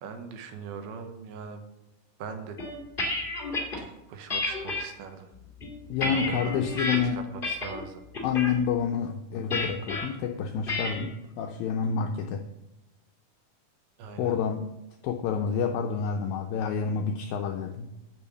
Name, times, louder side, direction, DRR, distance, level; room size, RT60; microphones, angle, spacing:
voice 1, 0.0-1.6 2.2-2.6 3.8-5.3 6.1-8.0 14.0-14.4, right 6 dB, 75° right, 6 dB, 2.7 m, -41 dB
sound 1, 2.6-3.8 4.3-4.8 5.4-7.0 7.4-7.8 8.1-8.5 9.5-10.0 10.7-11.1, left 2 dB, 65° left, 0.5 m, -31 dB
voice 2, 5.9-7.2 8.2-11.1 11.4-12.5 14.2-14.6 15.0-17.9, left 7 dB, 85° left, 5 dB, 2.0 m, -28 dB
8.6 x 6.9 x 6.9 m, 0.96 s
omnidirectional pair, 4.8 m